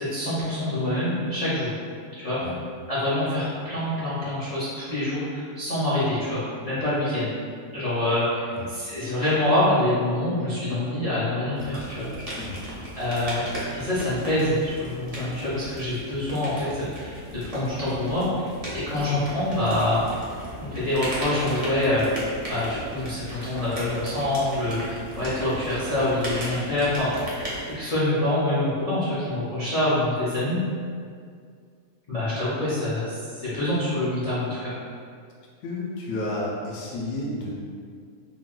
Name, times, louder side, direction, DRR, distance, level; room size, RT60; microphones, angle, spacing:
voice 1, 0.0-1.7 2.1-2.4 2.9-7.3 7.7-12.1 12.9-13.5 13.7-20.0 20.6-22.0 22.5-30.6 32.1-34.7, left 1 dB, 40° left, -12 dB, 0.6 m, -26 dB
sound 1, 11.6-27.7, right 1 dB, 40° right, 0.5 m, -36 dB
voice 2, 35.6-37.5, left 2 dB, 75° left, -3 dB, 1.0 m, -31 dB
3.8 x 2.2 x 2.4 m, 2.1 s
omnidirectional pair, 1.5 m